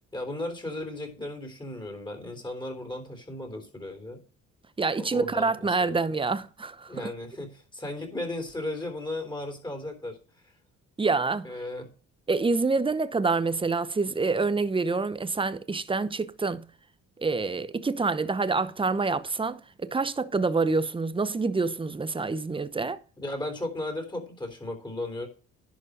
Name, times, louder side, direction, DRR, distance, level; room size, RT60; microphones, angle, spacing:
voice 1, 0.1-4.2 5.0-6.0 6.9-10.2 10.4-10.5 11.4-11.9 23.2-25.3, left 1 dB, 15° left, 3.6 m, -35 dB
voice 2, 4.8-7.1 11.0-11.5 12.3-16.6 17.2-23.0, right 4 dB, 15° right, 0.8 m, -27 dB
11.0 x 5.1 x 6.4 m
cardioid pair, 90°, 30 cm